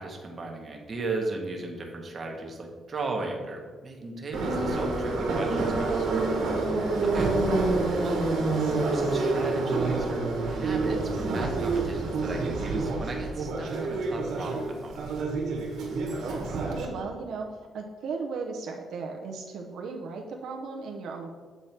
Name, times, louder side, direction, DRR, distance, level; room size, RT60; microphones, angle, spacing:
voice 1, 0.0-6.3 7.0-7.3 8.0-8.2 8.7-15.1, right 3 dB, 30° right, 1 dB, 1.0 m, -36 dB
Subway metro underground, 4.3-16.8, right 3 dB, 85° right, 1.4 m, -27 dB
voice 2, 6.9-7.4 16.2-17.5 17.7-21.3, right 4 dB, 70° right, 2 dB, 0.7 m, -36 dB
7.9 x 4.7 x 4.3 m, 1.5 s
cardioid pair, 180°, 0 cm